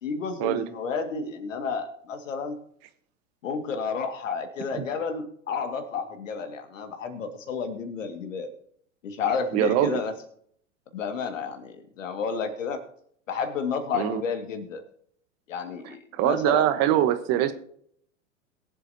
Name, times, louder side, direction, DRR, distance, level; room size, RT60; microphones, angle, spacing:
voice 1, 0.0-2.6 3.4-8.5 9.0-10.1 10.9-12.8 13.3-14.8 15.5-16.7, left 5 dB, 70° left, 6 dB, 2.1 m, -31 dB
voice 2, 9.5-10.0 13.9-14.2 16.1-17.5, right 12 dB, 40° right, 11 dB, 1.1 m, -23 dB
22.0 x 7.7 x 2.8 m, 0.64 s
figure-of-eight pair, 95°, 40 cm